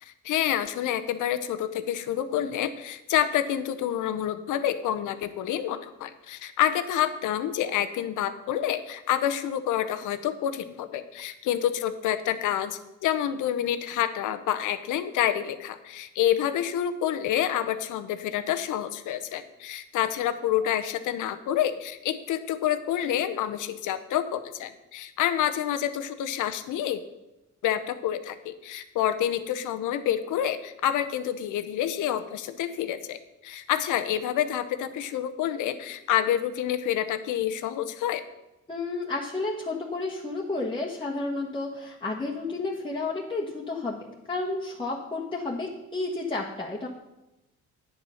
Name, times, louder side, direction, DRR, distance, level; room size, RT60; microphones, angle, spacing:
voice 1, 0.0-27.0 27.6-38.2, left 11 dB, 85° left, 11 dB, 0.8 m, -28 dB
voice 2, 38.7-46.9, left 3 dB, 15° left, -4 dB, 1.3 m, -31 dB
9.3 x 7.1 x 5.7 m, 0.95 s
cardioid pair, 90°, 30 cm